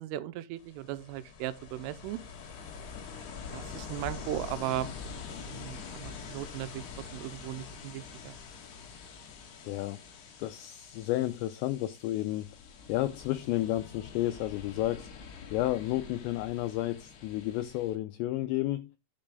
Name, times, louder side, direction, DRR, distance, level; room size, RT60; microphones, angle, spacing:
voice 1, 0.0-2.2 3.5-4.9 5.5-6.9 7.1-8.4, right 13 dB, 90° right, 3.3 m, -37 dB
Ocean, 0.6-17.9, left 6 dB, 60° left, 3.7 m, -45 dB
voice 2, 9.6-10.0 10.4-12.5 12.9-15.1 15.5-18.9, left 15 dB, 85° left, 2.5 m, -31 dB
10.5 x 6.7 x 3.7 m
omnidirectional pair, 5.7 m